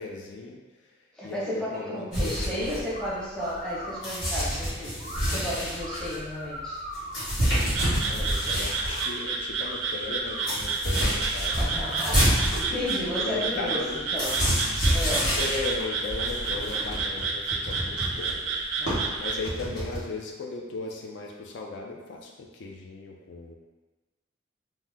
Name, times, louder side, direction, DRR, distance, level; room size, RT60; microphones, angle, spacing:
voice 1, 0.0-2.9 8.1-12.0 12.7-14.0 14.3-14.4 15.4-18.6 19.2-23.6, left 3 dB, 60° left, 0 dB, 0.3 m, -37 dB
voice 2, 1.1-6.8 11.6-13.8 14.1-14.4 14.9-15.3 18.8-19.1, left 1 dB, 5° left, -8 dB, 0.6 m, -33 dB
sound 1, 2.1-3.7 4.0-9.0 9.5-9.6 9.8-20.0, equal, 75° left, 1.3 m, -28 dB
sound 2, 2.9-3.1 3.4-4.1 5.0-5.3 5.8-7.3 8.3-9.1 9.6-10.5 11.0-11.1 11.4-12.5 13.0-13.3 13.7-14.8, equal, 40° left, 0.9 m, -41 dB
Frog, 7.6-19.4, right 4 dB, 80° right, 0.4 m, -31 dB
2.8 x 2.1 x 3.4 m, 1.2 s
head